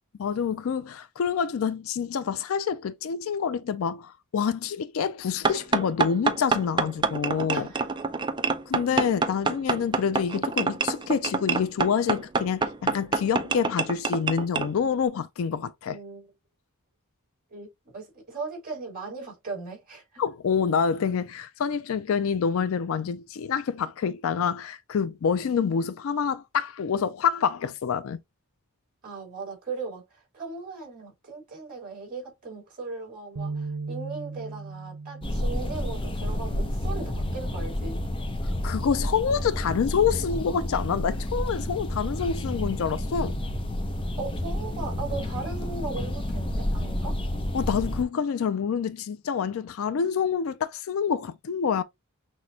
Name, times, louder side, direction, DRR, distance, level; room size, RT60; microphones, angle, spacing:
voice 1, 0.2-7.7 8.7-16.0 20.2-28.2 38.6-43.4 47.5-51.8, left 6 dB, 65° left, 0.4 m, -27 dB
sound 1, 5.4-14.7, right 4 dB, 20° right, 0.4 m, -26 dB
voice 2, 7.5-7.9 15.9-16.3 17.5-20.2 29.0-38.0 44.1-47.2, right 4 dB, 40° right, 3.2 m, -38 dB
sound 2, 33.4-39.6, right 4 dB, 90° right, 0.5 m, -40 dB
sound 3, 35.2-48.0, left 1 dB, 25° left, 0.7 m, -30 dB
6.0 x 2.2 x 2.7 m
head